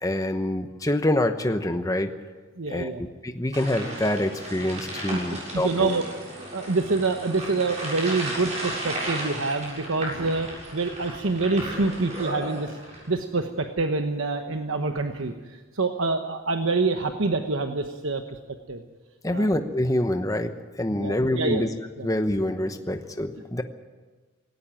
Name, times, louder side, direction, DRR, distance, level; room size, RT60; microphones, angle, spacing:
voice 1, 0.0-2.1 2.7-5.9 19.2-21.7 22.0-23.6, left 1 dB, 15° left, 7 dB, 1.0 m, -26 dB
voice 2, 2.6-3.0 5.1-6.0 6.5-12.7 13.1-18.4 18.7-18.8 19.3-19.5 20.9-21.6 22.0-22.1, right 3 dB, 65° right, 5 dB, 1.1 m, -26 dB
sound 1, 3.5-13.1, right 1 dB, 30° right, 7.2 m, -35 dB
18.5 x 17.5 x 9.1 m, 1.3 s
head